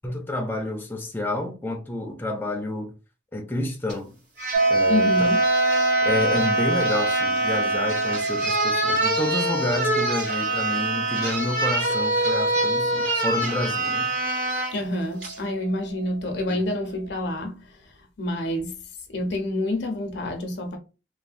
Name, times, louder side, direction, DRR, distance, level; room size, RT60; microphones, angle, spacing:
voice 1, 0.0-2.9 3.3-4.2 4.7-5.3 6.0-14.1 16.5-16.6, left 1 dB, 10° left, 0.5 m, -29 dB
sound 1, 3.9-4.0 4.4-14.7 15.2-15.4, right 1 dB, 80° right, 1.5 m, -25 dB
sound 2, 4.5-15.5, right 2 dB, 65° right, 0.3 m, -27 dB
voice 2, 4.9-5.4 14.7-17.7 18.2-18.8 19.1-20.8, left 1 dB, 70° left, 0.6 m, -27 dB
3.1 x 2.1 x 2.5 m
head